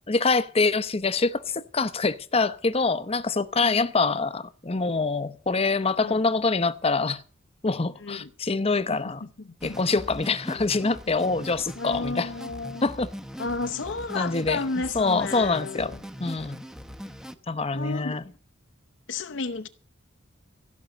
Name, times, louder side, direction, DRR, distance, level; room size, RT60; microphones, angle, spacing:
voice 1, 0.1-7.2 7.6-9.2 9.6-12.3 12.8-13.1 14.1-14.6 14.9-16.6 17.5-18.2, left 3 dB, 30° left, 0.8 m, -25 dB
voice 2, 8.9-10.0 10.5-10.7 11.8-12.8 13.4-16.0 17.7-18.2 19.1-19.7, left 3 dB, 65° left, 0.8 m, -33 dB
sound 1, 9.6-17.4, equal, 5° right, 0.9 m, -41 dB
15.5 x 6.3 x 9.0 m
head